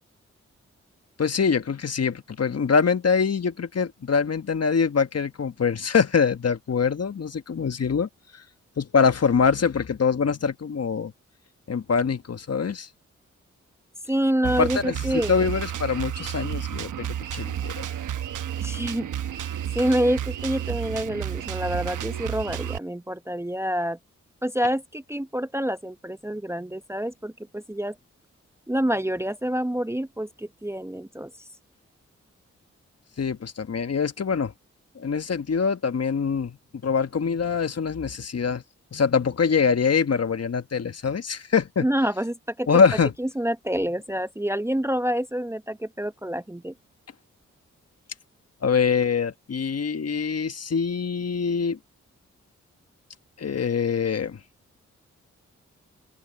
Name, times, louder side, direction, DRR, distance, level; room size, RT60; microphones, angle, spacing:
voice 1, 1.2-8.1 8.8-11.1 11.7-12.9 14.4-17.1 17.3-17.9 33.2-34.5 34.9-36.6 36.8-38.6 38.9-41.9 42.7-43.1 48.6-51.8 53.4-54.4, left 6 dB, 55° left, 1.5 m, -24 dB
voice 2, 14.1-15.5 18.6-19.1 19.7-24.0 24.4-28.0 28.7-31.3 41.8-42.7 43.2-46.7, equal, 10° right, 0.8 m, -27 dB
Drum kit, 14.4-22.8, right 10 dB, 80° right, 1.0 m, -31 dB
open air
supercardioid pair, 40°, 30 cm